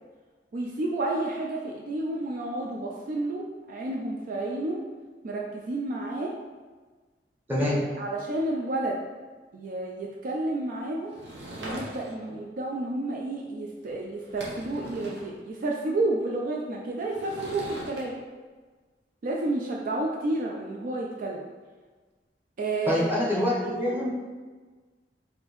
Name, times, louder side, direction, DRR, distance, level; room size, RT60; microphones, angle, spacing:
voice 1, 0.5-4.8 5.2-6.3 7.7-9.0 9.5-11.2 11.6-18.1 19.2-21.5 22.6-23.1 23.6-24.0, right 2 dB, 50° right, -1 dB, 0.4 m, -31 dB
Sliding door / Wood, 11.1-12.3 13.8-13.9 14.2-15.3 17.1-18.0, right 1 dB, 80° right, 0.9 m, -40 dB
voice 2, 22.9-24.1, left 1 dB, 10° right, -6 dB, 0.9 m, -25 dB
4.8 x 2.6 x 3.0 m, 1.4 s
head